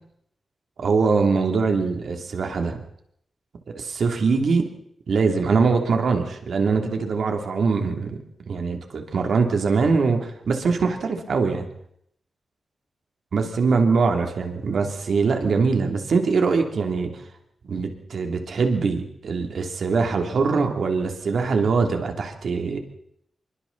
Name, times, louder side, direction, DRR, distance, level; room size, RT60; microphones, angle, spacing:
voice 1, 0.8-2.8 3.7-4.7 5.1-8.2 8.5-11.7 13.3-17.1 17.7-22.8, right 4 dB, 80° right, 4 dB, 3.1 m, -22 dB
26.5 x 23.5 x 4.2 m, 0.71 s
cardioid pair, 80°, 0 cm